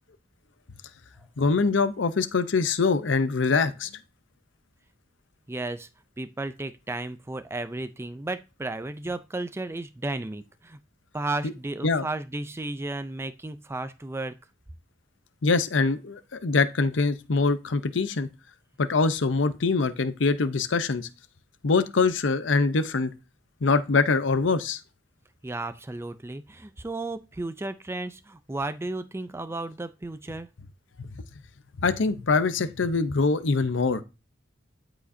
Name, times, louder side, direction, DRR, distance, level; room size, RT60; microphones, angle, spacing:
voice 1, 1.4-3.9 11.4-11.5 11.8-12.1 15.4-18.3 18.8-21.1 21.6-23.1 23.6-24.8 31.0-31.1 31.8-34.0, left 4 dB, 70° left, 0.7 m, -24 dB
voice 2, 5.5-5.9 6.2-10.8 11.1-14.3 25.4-30.5, right 2 dB, 15° right, 0.4 m, -34 dB
12.5 x 4.9 x 2.6 m
head